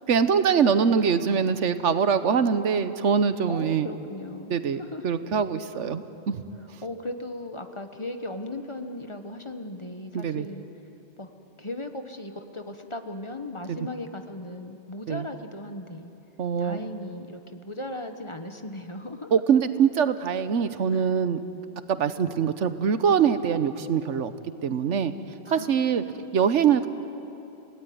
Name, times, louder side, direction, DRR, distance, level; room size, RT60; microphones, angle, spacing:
voice 1, 0.1-3.9 4.5-6.4 10.1-10.5 13.7-13.8 15.1-15.2 16.4-16.8 19.3-21.4 21.9-24.3 24.6-25.1 25.5-26.0 26.3-26.9, right 7 dB, 85° right, 12 dB, 1.3 m, -23 dB
voice 2, 3.5-4.5 4.8-5.1 6.8-10.6 11.2-11.3 11.6-16.1 16.6-19.3 20.9-21.1 25.4-26.4, left 1 dB, 25° left, 6 dB, 1.2 m, -37 dB
29.5 x 18.0 x 9.4 m, 3.0 s
omnidirectional pair, 1.2 m